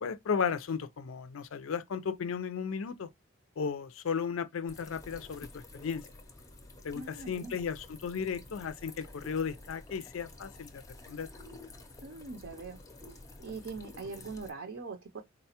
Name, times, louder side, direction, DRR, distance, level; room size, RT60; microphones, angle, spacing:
voice 1, 0.0-3.1 3.6-6.0 6.8-11.3, left 6 dB, 80° left, 0.4 m, -35 dB
sound 1, 4.7-14.5, left 2 dB, 15° left, 0.5 m, -50 dB
voice 2, 6.9-7.6 12.0-12.8 13.1-15.2, right 4 dB, 65° right, 0.6 m, -42 dB
3.9 x 2.2 x 2.8 m
head